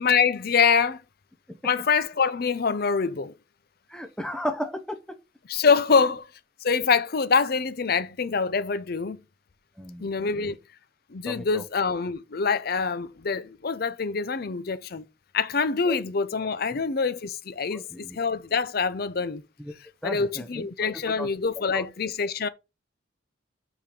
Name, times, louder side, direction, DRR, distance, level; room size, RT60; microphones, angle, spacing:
voice 1, 0.0-1.0 1.6-3.3 5.5-6.3 6.6-9.2 10.0-10.6 11.1-15.0 15.3-19.4 20.0-22.5, left 5 dB, 50° left, 0.5 m, -25 dB
voice 2, 3.9-5.0 5.9-6.1 9.8-10.5 11.2-11.6 15.8-16.0 16.7-16.8 17.7-18.2 19.6-19.7 20.0-20.7 21.2-21.3 21.7-21.8, left 1 dB, 5° left, 0.8 m, -35 dB
5.7 x 5.0 x 5.2 m
head